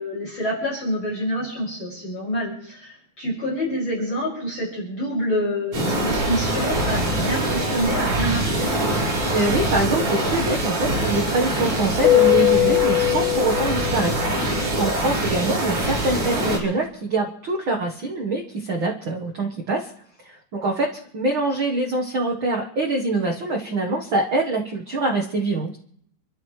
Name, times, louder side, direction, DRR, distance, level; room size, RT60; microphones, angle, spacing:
voice 1, 0.0-8.7, equal, 35° left, -5 dB, 6.6 m, -27 dB
sound 1, 5.7-16.6, right 1 dB, 35° right, 5.5 m, -24 dB
voice 2, 9.3-19.9 20.2-25.7, right 2 dB, 65° right, 0 dB, 1.2 m, -24 dB
Keyboard (musical), 12.0-14.6, left 15 dB, 80° left, 2.7 m, -20 dB
29.5 x 12.5 x 3.2 m, 0.68 s
omnidirectional pair, 4.2 m